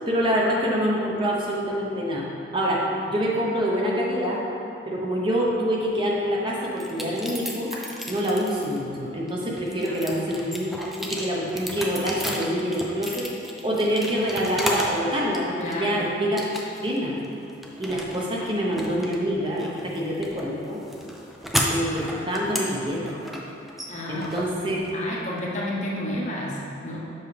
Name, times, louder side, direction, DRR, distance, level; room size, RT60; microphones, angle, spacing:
voice 1, 0.1-4.4 4.9-7.7 8.1-13.3 13.6-16.4 16.8-17.2 17.8-20.8 21.7-23.2 24.1-24.9, equal, 25° right, -4 dB, 0.8 m, -26 dB
sound 1, 6.8-8.8 9.3-15.0 15.3-16.0 16.4-17.0 17.2-25.2, equal, ahead, 0.4 m, -33 dB
voice 2, 9.9-10.4 15.6-16.0 23.9-24.3 24.6-27.0, left 1 dB, 35° left, -4 dB, 0.9 m, -31 dB
7.2 x 5.7 x 3.3 m, 2.6 s
head